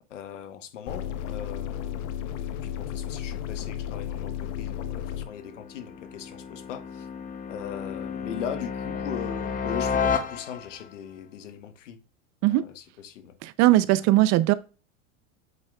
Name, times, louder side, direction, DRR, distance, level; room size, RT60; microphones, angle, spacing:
voice 1, 0.1-7.1 7.5-12.0 12.5-13.3, left 9 dB, 85° left, 1.2 m, -39 dB
sound 1, 0.9-5.3, left 10 dB, 55° left, 0.9 m, -33 dB
sound 2, 4.5-10.9, left 6 dB, 20° left, 0.8 m, -32 dB
voice 2, 13.4-14.5, right 16 dB, 45° right, 0.7 m, -19 dB
8.2 x 5.2 x 2.4 m
hypercardioid pair, 105°, 36 cm